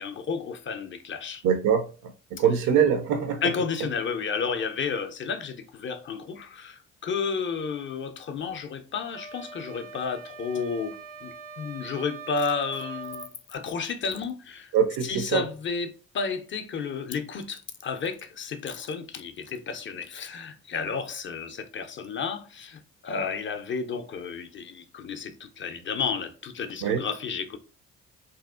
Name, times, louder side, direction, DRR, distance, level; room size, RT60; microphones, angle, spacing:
voice 1, 0.0-1.4 3.4-14.7 15.0-27.6, left 5 dB, 35° left, 0.4 m, -32 dB
voice 2, 1.4-3.4 14.7-15.4 26.8-27.0, right 8 dB, 60° right, 0.4 m, -23 dB
sound 1, 9.1-13.3, right 5 dB, 85° right, 0.8 m, -42 dB
2.7 x 2.0 x 2.3 m
hypercardioid pair, 45°, 35 cm